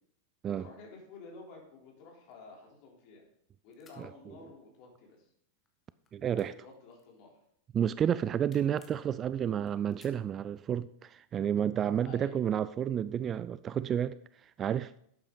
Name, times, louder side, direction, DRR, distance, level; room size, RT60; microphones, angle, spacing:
voice 1, 0.6-3.2 3.6-5.3 6.3-7.4 12.0-12.4, left 3 dB, 45° left, 3.7 m, -51 dB
sound 1, 2.3-3.4 3.7-4.0 4.8-5.3 5.6-7.5 7.9-9.1 9.6-10.7, left 5 dB, 25° left, 1.8 m, -63 dB
voice 2, 4.0-4.3 6.1-6.5 7.7-15.0, right 9 dB, 25° right, 0.3 m, -31 dB
12.0 x 8.6 x 3.9 m
figure-of-eight pair, 90°, 0 cm